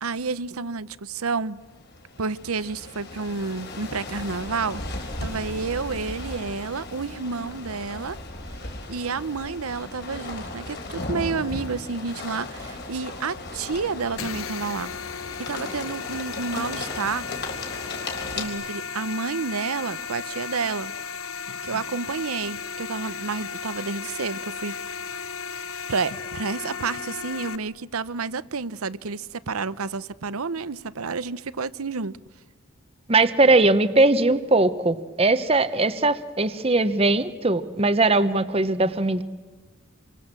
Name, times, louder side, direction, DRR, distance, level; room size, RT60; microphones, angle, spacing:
voice 1, 0.0-1.6 2.2-8.2 8.9-14.9 15.4-17.3 18.4-20.9 21.6-24.8 25.9-32.2, right 4 dB, 85° right, 0.8 m, -30 dB
sound 1, 1.6-18.5, left 2 dB, 50° left, 3.7 m, -36 dB
sound 2, 14.2-27.6, left 6 dB, 70° left, 0.9 m, -35 dB
voice 2, 33.1-39.2, right 2 dB, 25° right, 0.9 m, -20 dB
27.5 x 24.5 x 7.6 m
head